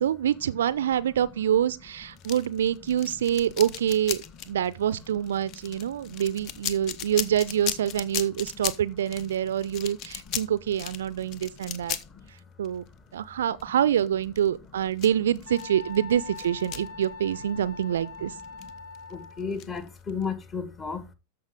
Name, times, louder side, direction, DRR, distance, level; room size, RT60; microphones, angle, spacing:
voice 1, 0.0-12.0 12.6-12.8 13.1-18.3, right 10 dB, 60° right, 0.5 m, -26 dB
sound 1, 2.2-17.6 17.8-18.0 18.4-20.2, left 10 dB, 40° left, 0.9 m, -37 dB
voice 2, 5.7-6.2 6.8-6.9 8.5-8.6 9.4-9.7 10.3-10.4 11.2-11.8 12.0-12.3 18.5-18.7 19.1-21.1, left 5 dB, 20° left, 1.5 m, -36 dB
Wind instrument woodwind instrument, 15.5-19.5, left 4 dB, 55° left, 1.3 m, -42 dB
13.5 x 5.5 x 3.6 m
figure-of-eight pair, 90°, 0 cm